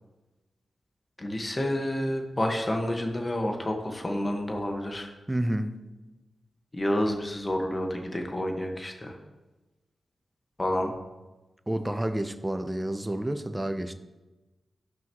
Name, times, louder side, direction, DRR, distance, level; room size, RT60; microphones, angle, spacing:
voice 1, 1.2-5.1 6.7-9.1 10.6-10.9, left 1 dB, 30° left, 1.5 m, -29 dB
voice 2, 5.3-5.7 11.7-13.9, right 1 dB, 15° right, 0.8 m, -29 dB
15.5 x 5.7 x 3.1 m
cardioid pair, 50°, 0 cm